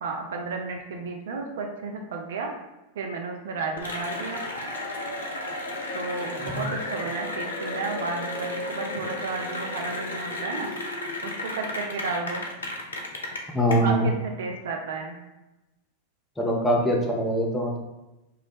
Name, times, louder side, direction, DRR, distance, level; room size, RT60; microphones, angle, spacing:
voice 1, 0.0-2.5 3.0-4.4 5.9-10.7 11.2-12.5 13.8-15.2, right 4 dB, 60° right, 2 dB, 0.3 m, -33 dB
Cheering / Applause, 3.8-13.7, left 2 dB, 70° left, 0.4 m, -33 dB
voice 2, 13.5-14.1 16.4-17.8, equal, 10° left, -2 dB, 0.5 m, -23 dB
2.4 x 2.0 x 2.9 m, 0.99 s
figure-of-eight pair, 90°, 0 cm